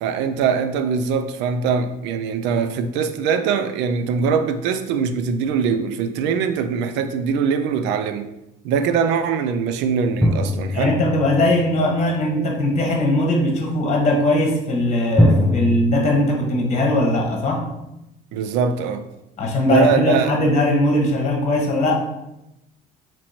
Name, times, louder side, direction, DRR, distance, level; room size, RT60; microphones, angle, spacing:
voice 1, 0.0-8.3 8.6-10.9 18.3-19.0 19.6-20.3, right 6 dB, 75° right, 9 dB, 0.4 m, -22 dB
sound 1, 10.2-11.9 15.2-15.8, left 1 dB, 5° left, 0.5 m, -20 dB
voice 2, 10.7-17.7 19.4-21.9, left 1 dB, 40° left, 1 dB, 1.1 m, -20 dB
3.0 x 2.9 x 4.1 m, 0.89 s
supercardioid pair, 80°, 18 cm